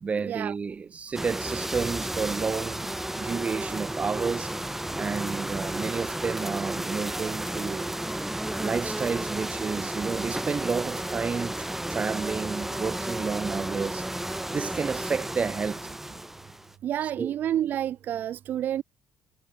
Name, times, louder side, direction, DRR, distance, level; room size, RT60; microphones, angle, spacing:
voice 1, 0.0-2.9 3.2-8.0 8.6-15.9 17.0-17.4, right 5 dB, 35° right, 2.1 m, -31 dB
sound 1, 1.1-16.7, right 1 dB, 5° right, 1.0 m, -33 dB
voice 2, 16.8-18.8, right 11 dB, 50° right, 0.7 m, -29 dB
figure-of-eight pair, 50°, 4 cm